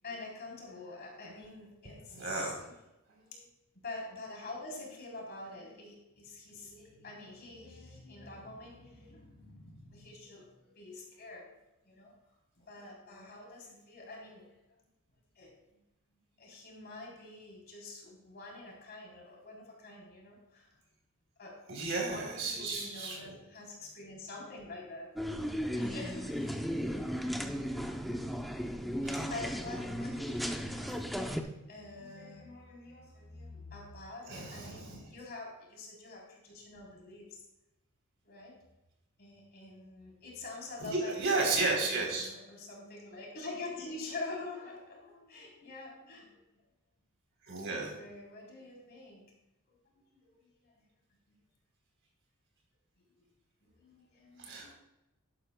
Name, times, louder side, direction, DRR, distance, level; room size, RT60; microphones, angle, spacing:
voice 1, 0.0-2.8 3.1-3.5 3.8-11.5 11.8-12.1 12.6-14.6 15.4-15.8 16.4-20.7 21.4-21.6 22.0-25.1 25.7-26.6 29.2-37.4 38.2-38.6 39.2-46.4 47.7-49.3 49.7-50.8 51.3-51.4 53.8-54.7, left 2 dB, 50° left, -2 dB, 3.5 m, -46 dB
voice 2, 2.2-2.6 21.7-23.3 29.0-29.2 34.3-35.0 40.8-42.3 47.5-47.9 54.4-54.7, right 3 dB, 60° right, -1 dB, 3.5 m, -33 dB
sound 1, 25.2-31.4, equal, ahead, 0.6 m, -35 dB
11.5 x 11.5 x 2.2 m, 0.94 s
head